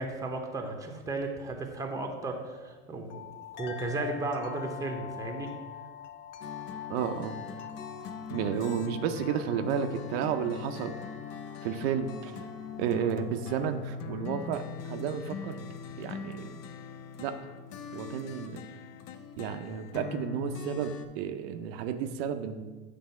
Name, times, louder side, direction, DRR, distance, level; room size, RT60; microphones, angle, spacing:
voice 1, 0.0-3.2 3.5-5.5, right 2 dB, 10° right, 3 dB, 0.8 m, -34 dB
sound 1, 2.2-13.8, left 7 dB, 85° left, 0.7 m, -45 dB
sound 2, 6.4-21.1, left 6 dB, 45° left, 0.6 m, -41 dB
voice 2, 6.9-7.4 8.3-11.0 11.6-12.3 12.8-15.7 16.0-16.6 17.2-17.4 17.9-18.6 19.4-22.7, right 8 dB, 65° right, 7 dB, 0.6 m, -32 dB
7.5 x 3.4 x 5.6 m, 1.3 s
supercardioid pair, 130°, 34 cm